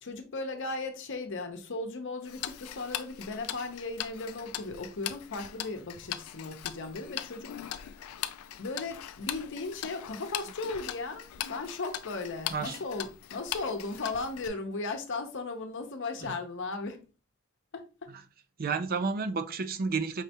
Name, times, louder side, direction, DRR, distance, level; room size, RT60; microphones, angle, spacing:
voice 1, 0.0-7.9 8.6-17.0 17.7-18.1, left 3 dB, 60° left, 0.8 m, -37 dB
Tick-tock, 2.2-14.5, left 11 dB, 80° left, 0.4 m, -40 dB
voice 2, 18.6-20.2, right 4 dB, 45° right, 0.5 m, -31 dB
5.0 x 3.3 x 2.9 m
head